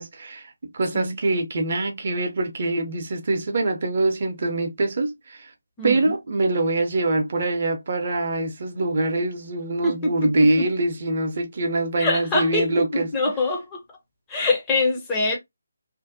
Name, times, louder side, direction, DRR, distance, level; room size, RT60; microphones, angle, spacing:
voice 1, 0.0-5.5 5.8-13.1, right 2 dB, 40° right, 0.6 m, -24 dB
voice 2, 5.8-6.1 9.8-10.7 12.0-13.8 14.3-15.4, left 2 dB, 15° left, 0.5 m, -24 dB
2.6 x 2.0 x 2.5 m
figure-of-eight pair, 150°, 0 cm